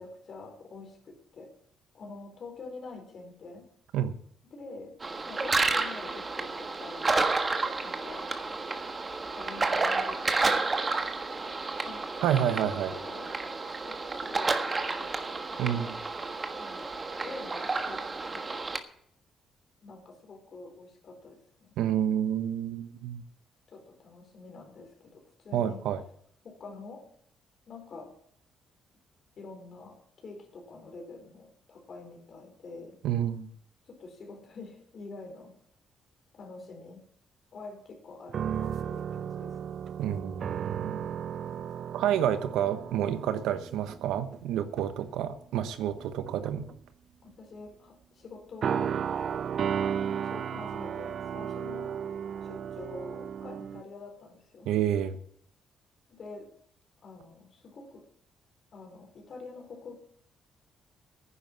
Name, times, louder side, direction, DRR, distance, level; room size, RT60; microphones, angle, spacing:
voice 1, 0.0-1.5 1.9-3.7 4.5-5.0 5.3-7.2 7.8-8.3 9.4-10.6 11.8-14.5 14.9-15.8 16.6-18.5 19.8-21.8 23.7-25.8 26.4-27.1 27.7-28.1 29.4-33.0 33.9-35.6 36.3-37.0 37.5-39.8 47.2-49.0 50.2-51.9 52.4-54.7 56.1-56.5 57.0-58.1 58.7-59.9, left 3 dB, 55° left, 4 dB, 4.2 m, -46 dB
sound 1, 5.0-18.8, right 3 dB, 30° right, 1.5 m, -31 dB
voice 2, 12.2-12.9 15.6-16.0 21.8-23.2 25.5-26.0 33.0-33.5 40.0-41.0 41.9-46.7 54.6-55.2, right 10 dB, 90° right, 11 dB, 1.0 m, -29 dB
sound 2, 38.3-44.4 44.8-45.0 46.0-46.7 48.6-53.8, right 8 dB, 60° right, 0.5 m, -34 dB
11.0 x 10.0 x 7.2 m, 0.65 s
cardioid pair, 90°, 0 cm